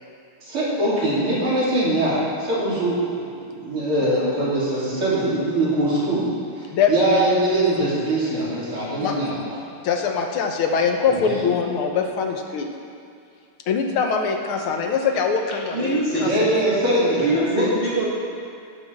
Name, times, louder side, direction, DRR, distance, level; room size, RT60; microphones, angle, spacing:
voice 1, 0.4-6.2 6.6-9.6 11.2-11.4 16.1-17.7, right 1 dB, 80° right, -8 dB, 4.4 m, -22 dB
voice 2, 9.8-12.7 13.7-16.3 17.3-17.5, left 6 dB, 80° left, 3 dB, 2.0 m, -23 dB
voice 3, 15.7-16.3 17.2-18.1, right 1 dB, 25° right, -7 dB, 1.8 m, -23 dB
17.0 x 11.5 x 3.7 m, 2.5 s
omnidirectional pair, 2.4 m